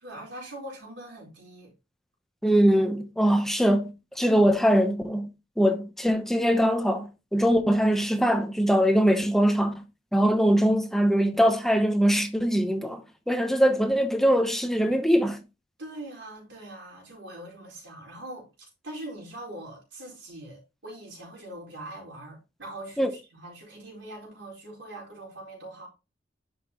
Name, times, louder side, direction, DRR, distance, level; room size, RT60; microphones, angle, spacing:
voice 1, 0.0-1.7 15.8-25.9, right 1 dB, 75° right, 4.5 m, -42 dB
voice 2, 2.4-5.3 5.6-9.8 10.1-13.0 13.3-15.4 23.0-23.1, equal, ahead, 0.8 m, -22 dB
10.5 x 5.9 x 2.9 m
head